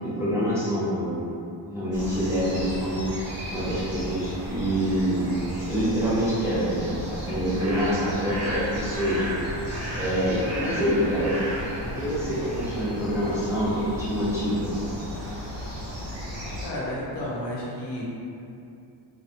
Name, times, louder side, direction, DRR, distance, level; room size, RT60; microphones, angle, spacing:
voice 1, 0.0-1.2 1.7-3.1 3.5-5.3 5.7-9.3 9.9-11.4 11.8-14.7, equal, 5° right, -10 dB, 0.3 m, -26 dB
sound 1, 1.9-16.7, equal, 35° right, 0.9 m, -34 dB
voice 2, 16.6-18.0, left 1 dB, 70° left, -6 dB, 0.7 m, -32 dB
2.4 x 2.1 x 2.6 m, 2.6 s
cardioid pair, 130°, 44 cm